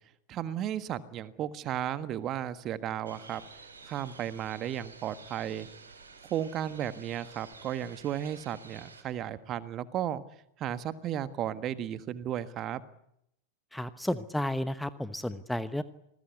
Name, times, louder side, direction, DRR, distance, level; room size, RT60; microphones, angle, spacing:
voice 1, 0.3-3.4 3.8-5.7 6.3-10.2 10.6-12.8, right 10 dB, 35° right, 13 dB, 1.6 m, -34 dB
sound 1, 3.0-9.0, right 4 dB, 75° right, 6.3 m, -51 dB
voice 2, 13.7-15.8, left 1 dB, 5° left, 13 dB, 1.0 m, -32 dB
27.5 x 20.5 x 8.3 m, 0.78 s
figure-of-eight pair, 90°, 0 cm